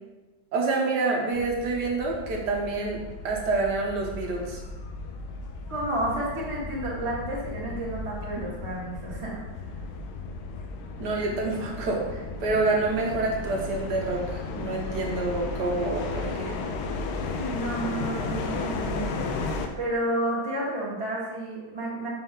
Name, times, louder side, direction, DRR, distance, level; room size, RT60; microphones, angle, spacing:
voice 1, 0.5-4.6 8.4-8.5 11.0-16.5, right 3 dB, 60° right, -1 dB, 1.6 m, -27 dB
sound 1, 1.3-19.7, left 3 dB, 90° left, 1.5 m, -35 dB
voice 2, 5.7-9.4 17.1-19.2 19.8-22.1, right 1 dB, 15° right, -6 dB, 1.4 m, -31 dB
6.8 x 5.3 x 3.7 m, 1.2 s
omnidirectional pair, 2.2 m